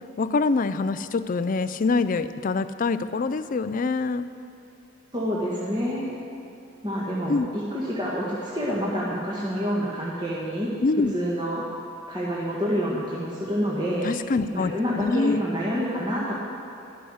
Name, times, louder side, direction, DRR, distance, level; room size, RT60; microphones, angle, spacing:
voice 1, 0.2-4.3 7.3-7.5 10.8-11.1 14.0-15.4, left 3 dB, 40° left, 12 dB, 0.4 m, -25 dB
voice 2, 5.1-6.1 6.8-10.7 11.1-11.6 12.1-14.1 14.5-16.3, equal, 20° right, -6 dB, 1.6 m, -27 dB
12.5 x 11.5 x 6.4 m, 2.8 s
head